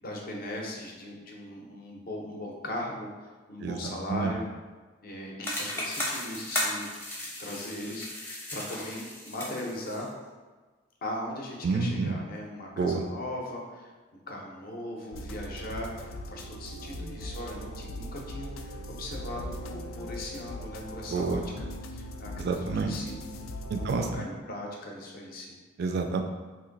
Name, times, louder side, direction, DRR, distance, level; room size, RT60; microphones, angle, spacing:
voice 1, 0.0-4.5 5.0-6.9 7.2-10.1 11.0-13.9 14.3-22.5 22.7-23.2 23.7-25.6, left 1 dB, 45° left, -1 dB, 0.6 m, -39 dB
voice 2, 3.6-4.3 11.6-12.1 12.8-13.0 21.1-21.4 22.4-22.9 23.7-24.2 25.8-26.2, right 4 dB, 55° right, 5 dB, 0.3 m, -29 dB
sound 1, 5.4-10.0, left 1 dB, 10° left, 0.6 m, -35 dB
sound 2, 15.1-24.1, equal, 90° left, 0.4 m, -40 dB
3.0 x 2.5 x 3.8 m, 1.3 s
head